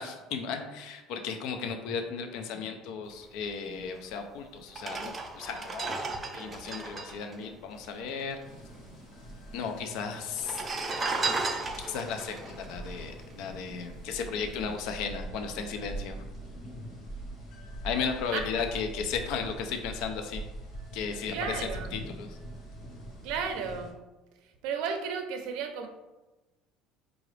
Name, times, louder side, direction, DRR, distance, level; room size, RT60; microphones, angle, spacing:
voice 1, 0.0-8.4 9.5-10.6 11.8-16.2 17.8-20.4 20.9-22.4, left 6 dB, 60° left, 5 dB, 0.4 m, -35 dB
sound 1, 4.0-4.1 4.7-8.4 8.6-8.7 8.9-9.6 10.3-13.8 14.2-14.4, right 3 dB, 20° right, 0.3 m, -35 dB
sound 2, 8.4-23.9, right 1 dB, 45° left, 1.1 m, -43 dB
voice 2, 21.3-22.0 23.2-24.0 24.6-25.9, right 6 dB, 65° right, 5 dB, 0.5 m, -33 dB
4.8 x 2.4 x 3.2 m, 1.1 s
cardioid pair, 165°, 0 cm